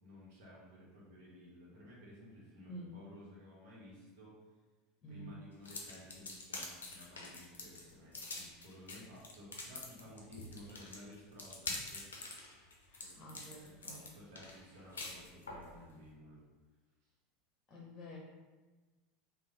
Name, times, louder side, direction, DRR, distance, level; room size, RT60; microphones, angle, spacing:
voice 1, 0.0-4.4 5.1-12.0 12.9-16.4 17.0-17.1, left 1 dB, 60° right, -5 dB, 1.1 m, -55 dB
voice 2, 5.0-5.4 12.9-14.1 17.7-18.2, right 1 dB, 30° left, -3 dB, 0.7 m, -50 dB
sound 1, 5.6-15.7, left 3 dB, 80° left, 0.5 m, -46 dB
3.2 x 2.1 x 3.8 m, 1.3 s
figure-of-eight pair, 80°, 0 cm